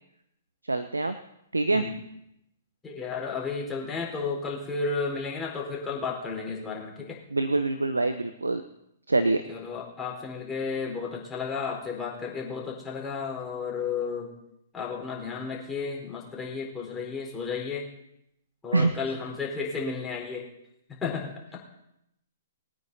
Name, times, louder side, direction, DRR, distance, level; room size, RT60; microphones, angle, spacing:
voice 1, 0.7-1.2 1.5-1.8 7.3-8.6 9.1-9.4 18.7-18.9, right 2 dB, 85° right, 11 dB, 0.8 m, -24 dB
voice 2, 2.8-7.2 9.5-14.3 14.7-17.9 18.6-20.5 21.0-21.6, left 5 dB, 15° left, -2 dB, 4.2 m, -33 dB
21.5 x 9.4 x 4.1 m, 0.80 s
figure-of-eight pair, 120°, 0 cm